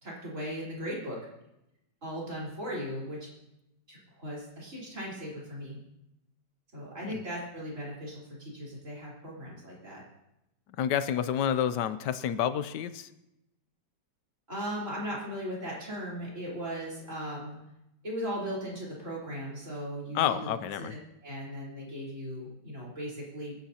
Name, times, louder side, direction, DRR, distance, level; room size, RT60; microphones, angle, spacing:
voice 1, 0.0-1.2 2.0-3.3 3.9-5.8 6.7-10.0 14.5-17.6 18.0-20.5 20.8-23.5, equal, 45° right, -6 dB, 4.5 m, -38 dB
voice 2, 10.8-13.1 20.1-20.9, left 9 dB, 75° left, 12 dB, 1.3 m, -29 dB
25.5 x 10.5 x 2.8 m, 0.88 s
omnidirectional pair, 1.9 m